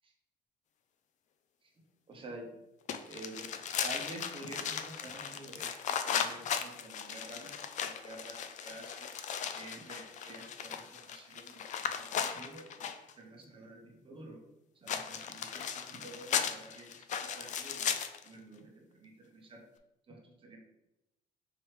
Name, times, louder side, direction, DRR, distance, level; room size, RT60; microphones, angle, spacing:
voice 1, 2.1-2.5 3.1-3.5 3.8-9.1 9.5-12.9 13.1-14.4 14.7-18.0 18.2-19.7 20.1-20.6, right 2 dB, 30° right, 1 dB, 1.0 m, -49 dB
sound 1, 2.9-13.1 14.9-18.3, left 8 dB, 45° left, 0.4 m, -37 dB
4.6 x 3.2 x 3.1 m, 0.90 s
cardioid pair, 110°, 17 cm